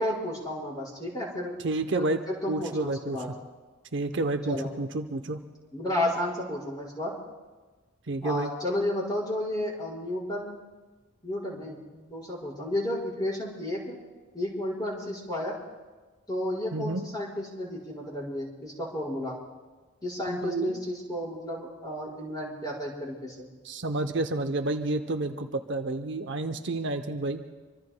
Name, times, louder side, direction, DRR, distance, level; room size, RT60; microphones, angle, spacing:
voice 1, 0.0-1.5 1.9-3.3 4.5-4.7 5.7-7.1 8.2-10.6 11.2-14.0 14.3-15.5 16.3-19.3 20.0-23.5, left 1 dB, 20° left, -5 dB, 4.9 m, -32 dB
voice 2, 1.6-2.2 2.5-3.2 3.9-5.4 8.1-8.5 16.7-17.0 20.3-20.8 23.6-27.4, right 2 dB, 60° right, 7 dB, 0.7 m, -30 dB
25.5 x 25.0 x 2.2 m, 1.3 s
head